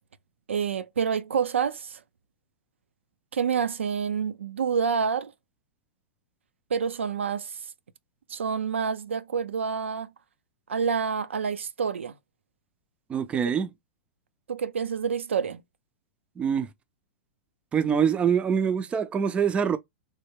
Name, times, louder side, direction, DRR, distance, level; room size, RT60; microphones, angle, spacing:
voice 1, 0.5-2.0 3.3-5.3 6.7-7.6 8.3-10.1 10.7-12.1 14.5-15.6, right 6 dB, 90° right, 0.4 m, -28 dB
voice 2, 13.1-13.7 16.4-16.7 17.7-19.8, right 7 dB, 15° right, 0.4 m, -24 dB
3.2 x 2.2 x 3.2 m
hypercardioid pair, 120°, 6 cm